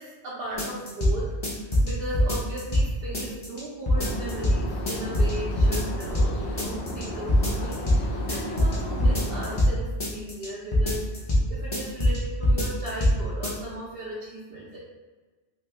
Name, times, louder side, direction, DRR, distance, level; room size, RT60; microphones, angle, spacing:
voice 1, 0.0-11.1 11.5-14.8, right 1 dB, 65° right, -6 dB, 0.8 m, -37 dB
sound 1, 0.6-1.1 1.4-2.9 3.1-3.6 3.9-4.6 4.9-5.3 5.6-6.3 6.6-7.0 7.3-8.0 8.3-9.7 10.0-10.5 10.7-11.4 11.7-12.2 12.4-13.1 13.4-13.5, left 1 dB, 30° left, 0.7 m, -22 dB
sound 2, 3.9-9.6, left 1 dB, 90° left, 0.9 m, -35 dB
2.9 x 2.6 x 3.3 m, 1.3 s
omnidirectional pair, 1.1 m